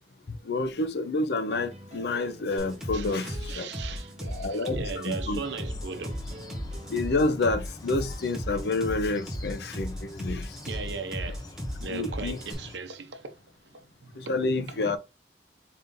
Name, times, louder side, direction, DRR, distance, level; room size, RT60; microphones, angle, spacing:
voice 1, 0.3-3.7 4.3-5.4 6.9-10.6 11.9-12.4 14.1-15.0, left 2 dB, 70° left, 0.5 m, -29 dB
sound 1, 1.5-7.5, right 1 dB, 35° right, 0.6 m, -47 dB
sound 2, 2.6-12.5, equal, 5° right, 1.1 m, -35 dB
voice 2, 2.9-6.2 10.7-11.5 11.8-13.3 13.7-14.3 14.7-15.0, right 4 dB, 85° right, 0.7 m, -38 dB
sound 3, 5.4-12.8, left 2 dB, 20° left, 0.5 m, -46 dB
4.3 x 2.6 x 3.6 m
head